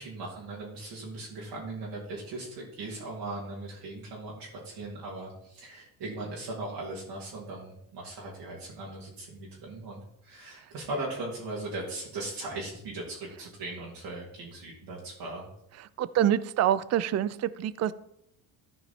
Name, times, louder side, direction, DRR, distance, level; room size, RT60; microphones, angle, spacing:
voice 1, 0.0-15.5, right 2 dB, 60° right, -5 dB, 2.7 m, -39 dB
voice 2, 16.0-17.9, right 11 dB, 35° right, 17 dB, 0.5 m, -26 dB
14.0 x 4.7 x 4.2 m, 0.76 s
supercardioid pair, 90°, 46 cm